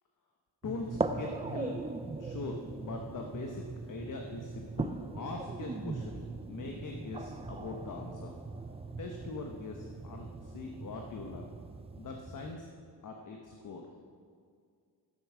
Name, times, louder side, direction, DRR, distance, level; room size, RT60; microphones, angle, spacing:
voice 1, 0.6-6.2 6.5-8.3 9.0-11.5 12.0-12.7 13.0-13.9, left 3 dB, 50° left, 2 dB, 1.1 m, -42 dB
sound 1, 0.6-12.5, right 3 dB, 15° right, 0.5 m, -40 dB
12.5 x 7.8 x 6.1 m, 2.1 s
wide cardioid pair, 140°, 41 cm